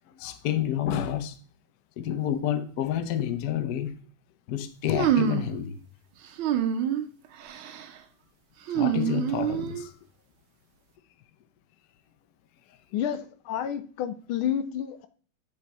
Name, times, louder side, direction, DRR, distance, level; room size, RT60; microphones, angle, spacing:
voice 1, 0.1-1.4 2.0-4.0 4.5-5.8 8.7-9.9, left 10 dB, 65° left, 0.9 m, -29 dB
sound 1, 5.0-5.6 6.4-7.1 7.4-7.9 8.7-9.9, right 9 dB, 75° right, 1.5 m, -26 dB
voice 2, 12.9-15.1, left 9 dB, 85° left, 1.4 m, -30 dB
8.4 x 3.5 x 4.1 m
omnidirectional pair, 2.3 m